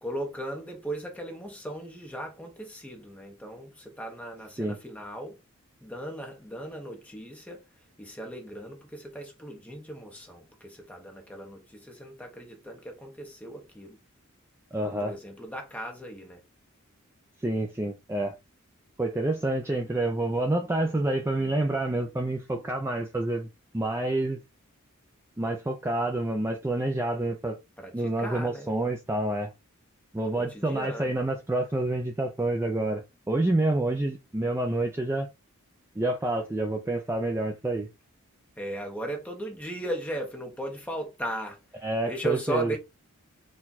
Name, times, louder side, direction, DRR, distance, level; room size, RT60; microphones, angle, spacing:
voice 1, 0.0-5.4 5.8-7.6 8.0-14.0 14.8-16.4 27.8-28.7 30.3-31.1 38.6-42.8, right 1 dB, 5° left, 1.0 m, -37 dB
voice 2, 14.7-15.1 17.4-18.4 19.0-23.5 23.7-24.4 25.4-27.6 27.9-29.5 30.1-35.3 36.0-37.9 41.8-42.7, right 2 dB, 10° right, 0.4 m, -28 dB
4.3 x 2.3 x 4.0 m
head